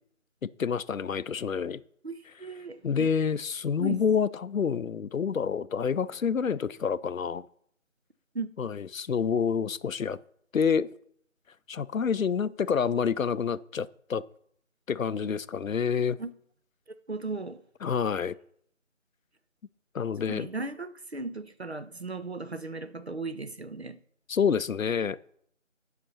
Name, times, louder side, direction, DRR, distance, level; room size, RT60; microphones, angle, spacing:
voice 1, 0.4-1.8 2.8-7.5 8.6-10.2 10.5-10.9 11.7-14.2 14.9-16.2 17.8-18.4 19.9-20.5 24.3-25.2, left 6 dB, 80° left, 0.6 m, -28 dB
voice 2, 2.0-3.1 3.8-4.0 8.3-8.5 16.2-16.3 17.1-17.6 20.3-24.0, right 3 dB, 55° right, 0.7 m, -36 dB
10.5 x 5.8 x 5.4 m
figure-of-eight pair, 175°, 40 cm